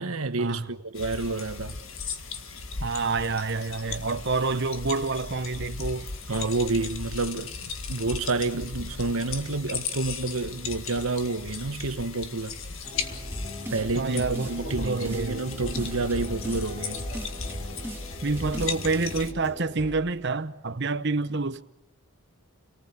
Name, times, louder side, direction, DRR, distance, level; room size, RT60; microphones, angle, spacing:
voice 1, 0.0-1.8 4.5-4.6 6.3-12.6 13.7-17.1, right 3 dB, 70° right, 1.3 m, -29 dB
sound 1, 0.9-19.3, left 5 dB, 60° left, 1.9 m, -37 dB
voice 2, 2.8-6.1 13.9-15.4 18.2-21.6, right 3 dB, 50° right, 1.0 m, -28 dB
sound 2, 12.8-20.0, left 1 dB, 35° left, 6.2 m, -40 dB
sound 3, 13.3-13.9 14.2-15.3 15.6-16.6 17.0-18.0 18.4-18.7, equal, 10° right, 2.3 m, -36 dB
29.5 x 19.0 x 8.3 m
head